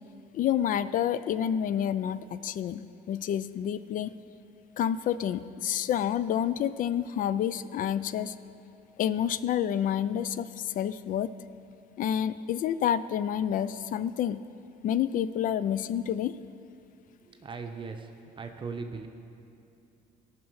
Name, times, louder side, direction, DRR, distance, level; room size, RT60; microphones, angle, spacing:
voice 1, 0.3-4.1 4.8-8.3 9.0-11.3 12.0-14.4 14.8-16.3, left 9 dB, 55° left, 15 dB, 0.4 m, -29 dB
voice 2, 17.2-18.1 18.4-19.1, right 4 dB, 30° right, 5 dB, 0.9 m, -38 dB
17.5 x 6.0 x 4.8 m, 2.6 s
cardioid pair, 110°, 17 cm